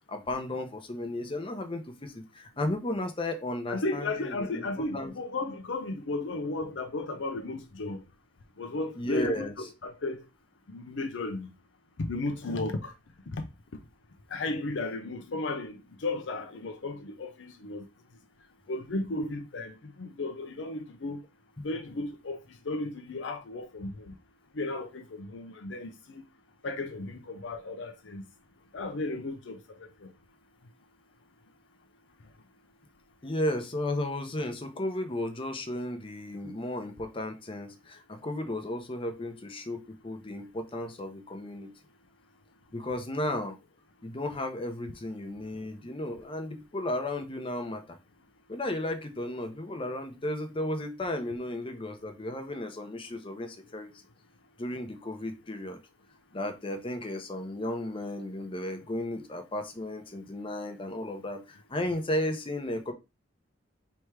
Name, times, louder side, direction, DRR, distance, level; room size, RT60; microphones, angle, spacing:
voice 1, 0.1-5.1 9.0-9.5 21.6-21.7 33.2-41.7 42.7-43.6 44.0-48.0 48.5-53.9 54.6-55.8 56.3-62.9, left 1 dB, 30° left, 0.8 m, -34 dB
voice 2, 3.7-8.0 8.6-10.2 10.7-11.5 12.0-12.9 14.3-15.8 16.0-17.8 18.7-19.7 20.0-21.2 21.6-22.4 22.7-23.9 24.6-25.9 26.6-28.2 28.7-29.6, left 2 dB, 75° left, 0.6 m, -34 dB
3.4 x 3.0 x 4.5 m
head